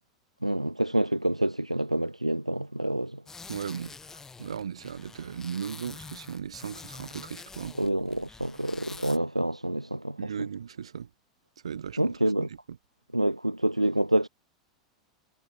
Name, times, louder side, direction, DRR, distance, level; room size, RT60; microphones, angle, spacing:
voice 1, 0.4-3.2 7.8-10.3 12.0-12.5 13.1-14.3, right 1 dB, 90° right, 1.3 m, -27 dB
sound 1, 3.3-9.2, left 4 dB, 15° left, 2.0 m, -46 dB
voice 2, 3.5-4.0 4.4-7.8 10.2-11.1 11.6-12.5, right 7 dB, 70° right, 2.3 m, -37 dB
figure-of-eight pair, 90°, 3 cm